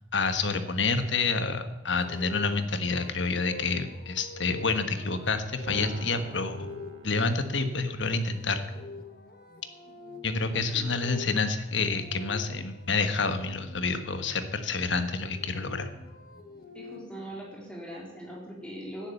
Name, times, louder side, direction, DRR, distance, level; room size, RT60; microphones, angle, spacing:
voice 1, 0.1-6.7 7.0-8.6 10.2-15.9, left 4 dB, 70° left, 8 dB, 1.4 m, -28 dB
sound 1, 2.0-13.9 15.0-17.3, left 3 dB, 50° left, 1.8 m, -46 dB
Piano, 5.7-8.1, right 2 dB, 85° right, 1.4 m, -44 dB
voice 2, 10.4-11.0 16.7-19.1, right 1 dB, 5° left, -3 dB, 3.5 m, -41 dB
11.5 x 10.5 x 8.3 m, 1.0 s
head